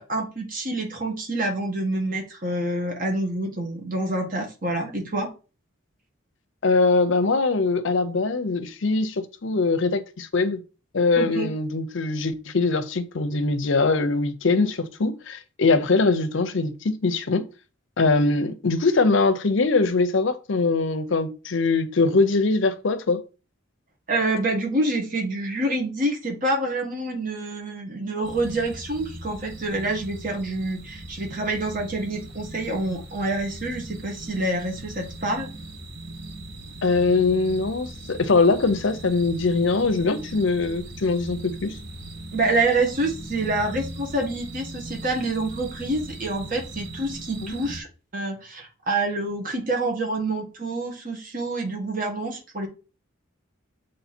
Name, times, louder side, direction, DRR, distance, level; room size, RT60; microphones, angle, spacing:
voice 1, 0.0-5.3 11.2-11.5 24.1-35.5 42.3-47.9 48.1-52.7, right 2 dB, 40° right, 1.6 m, -27 dB
voice 2, 6.6-10.6 10.9-17.5 18.0-23.2 36.8-41.8 47.4-47.6, left 3 dB, 65° left, 0.6 m, -22 dB
sound 1, 28.2-47.8, right 2 dB, 60° right, 1.3 m, -39 dB
6.9 x 3.2 x 4.3 m
head